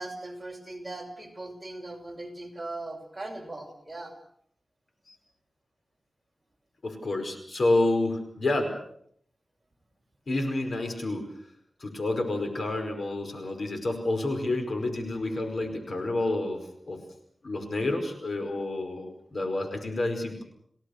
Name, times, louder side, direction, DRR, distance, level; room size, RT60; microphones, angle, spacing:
voice 1, 0.0-4.1, right 2 dB, 15° right, 1 dB, 5.9 m, -39 dB
voice 2, 6.8-8.7 10.3-11.3 11.8-16.6 16.9-17.0 17.4-20.4, left 2 dB, 65° left, 6 dB, 5.1 m, -29 dB
30.0 x 18.0 x 6.7 m, 0.66 s
wide cardioid pair, 90°, 0 cm